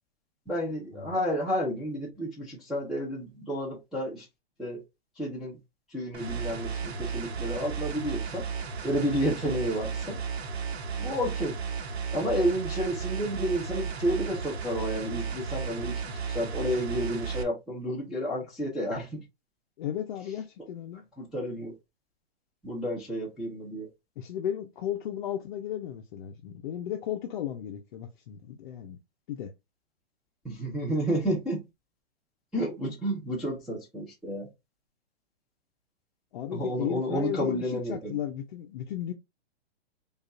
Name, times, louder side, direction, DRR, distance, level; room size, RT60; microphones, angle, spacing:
voice 1, 0.5-4.3 4.6-4.8 5.2-5.6 5.9-8.4 8.8-10.2 11.0-11.6 12.1-16.0 16.3-19.2 21.2-21.7 22.6-23.9 30.4-31.6 32.5-34.5 36.5-38.2, equal, ahead, 0.6 m, -31 dB
sound 1, 6.1-17.4, right 6 dB, 75° right, 1.0 m, -34 dB
voice 2, 19.8-21.0 24.2-29.0 29.3-29.5 36.3-39.1, left 10 dB, 50° left, 0.6 m, -34 dB
5.0 x 2.4 x 2.5 m
hypercardioid pair, 150°, 32 cm